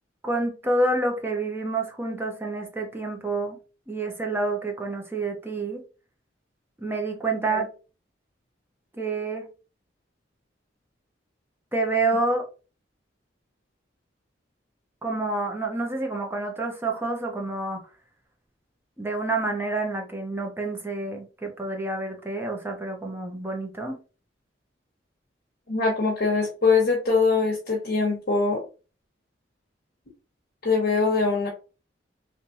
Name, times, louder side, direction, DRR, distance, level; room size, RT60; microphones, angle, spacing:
voice 1, 0.2-3.6 3.9-5.8 6.8-7.7 9.0-9.5 11.7-12.4 15.0-17.8 19.0-24.0, right 2 dB, 15° right, 2 dB, 0.9 m, -28 dB
voice 2, 25.7-28.6 30.6-31.5, left 4 dB, 60° left, -3 dB, 1.1 m, -22 dB
3.3 x 3.3 x 2.7 m, 0.34 s
head